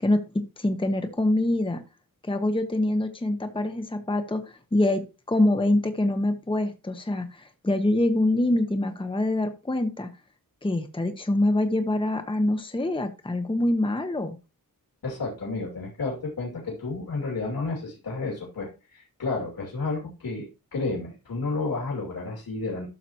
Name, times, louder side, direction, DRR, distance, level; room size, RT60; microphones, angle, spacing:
voice 1, 0.0-1.8 2.2-10.1 10.6-14.4, left 1 dB, 15° left, 7 dB, 1.0 m, -25 dB
voice 2, 15.0-20.5 20.7-22.9, left 3 dB, 85° left, -2 dB, 2.7 m, -31 dB
12.0 x 6.8 x 3.0 m, 0.29 s
wide cardioid pair, 100°, 35 cm